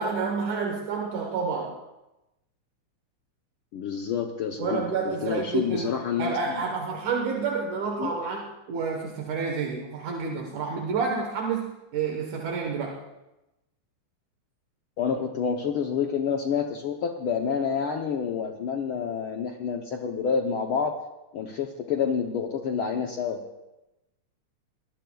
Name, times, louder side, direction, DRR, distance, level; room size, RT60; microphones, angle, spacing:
voice 1, 0.0-1.8 4.6-13.0, right 5 dB, 75° right, 1 dB, 2.6 m, -29 dB
voice 2, 3.7-6.3 8.0-8.1 15.0-20.9 21.3-23.4, left 6 dB, 85° left, 3 dB, 1.2 m, -28 dB
23.5 x 18.0 x 2.3 m, 0.97 s
omnidirectional pair, 3.5 m